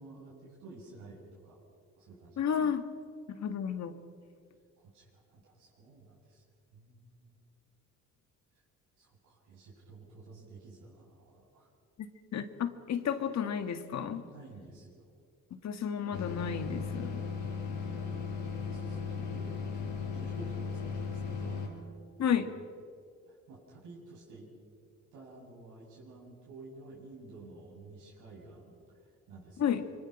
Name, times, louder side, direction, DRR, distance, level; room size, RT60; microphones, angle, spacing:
voice 1, 0.0-1.6 1.9-2.5 4.8-6.4 6.7-7.4 8.5-8.6 9.0-11.7 14.2-15.1 17.8-21.9 22.2-22.4 23.3-24.5 25.1-29.7, right 3 dB, 90° right, -6 dB, 7.4 m, -52 dB
voice 2, 2.4-2.8 3.3-4.0 12.0-14.2 15.6-17.2 22.2-22.5 29.6-29.8, left 8 dB, 60° left, 8 dB, 1.8 m, -32 dB
sound 1, 16.1-21.7, left 5 dB, 80° left, 4.9 m, -36 dB
26.5 x 24.5 x 6.1 m, 2.3 s
cardioid pair, 90°, 30 cm